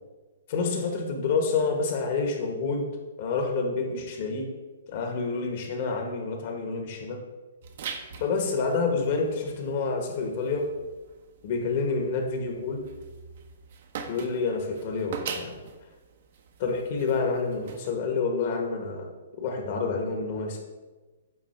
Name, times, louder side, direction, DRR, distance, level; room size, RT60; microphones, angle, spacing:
voice 1, 0.5-2.9 3.2-4.5 4.9-7.2 8.2-10.7 11.4-12.8 14.1-15.6 16.6-19.1 19.4-20.6, left 4 dB, 50° left, 3 dB, 1.2 m, -28 dB
sound 1, 7.6-18.0, right 6 dB, 55° right, 0.7 m, -43 dB
8.3 x 2.8 x 4.5 m, 1.2 s
hypercardioid pair, 135°, 0 cm